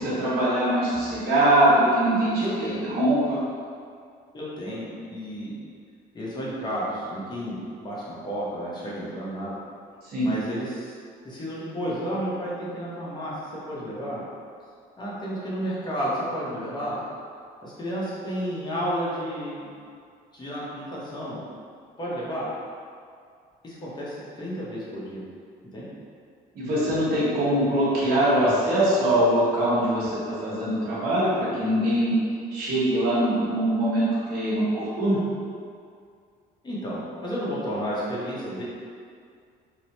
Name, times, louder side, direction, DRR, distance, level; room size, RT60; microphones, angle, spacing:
voice 1, 0.0-3.4 10.1-10.3 26.5-32.1 32.5-35.2, right 1 dB, 65° right, -9 dB, 1.0 m, -22 dB
voice 2, 2.4-2.9 4.3-5.6 6.1-9.5 10.2-10.9 11.2-13.3 13.6-14.2 15.0-17.0 17.6-19.7 20.3-21.4 22.0-22.5 23.6-25.2 25.7-25.9 36.6-38.6, equal, 25° left, -7 dB, 0.8 m, -32 dB
2.9 x 2.0 x 2.8 m, 2.3 s
cardioid pair, 110°, 17 cm